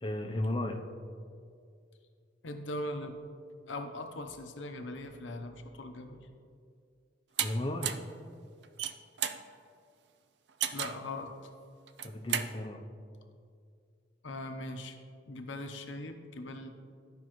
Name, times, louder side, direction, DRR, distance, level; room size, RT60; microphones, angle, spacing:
voice 1, 0.0-0.8 7.4-8.0 12.0-12.8, left 1 dB, 25° left, 3 dB, 0.6 m, -34 dB
voice 2, 2.4-3.2 3.7-6.3 10.7-11.5 14.2-15.0 15.3-16.7, left 1 dB, 85° left, 5 dB, 0.8 m, -40 dB
sound 1, 7.4-7.5 7.8-8.1 8.6-9.4 10.6-11.0 11.9-12.5, right 9 dB, 65° right, 0.4 m, -33 dB
14.0 x 5.3 x 3.1 m, 2.3 s
head